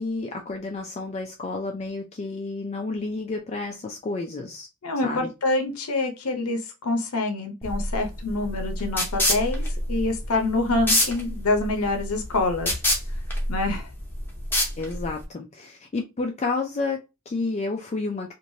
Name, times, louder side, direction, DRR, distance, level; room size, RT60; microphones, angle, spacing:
voice 1, 0.0-4.7 5.0-5.3 14.8-18.3, left 3 dB, 30° left, 0.4 m, -30 dB
voice 2, 4.8-12.7 13.5-13.9, left 2 dB, 75° left, 0.7 m, -26 dB
sound 1, 7.6-15.3, left 1 dB, 10° left, 0.8 m, -27 dB
3.1 x 2.5 x 2.6 m
head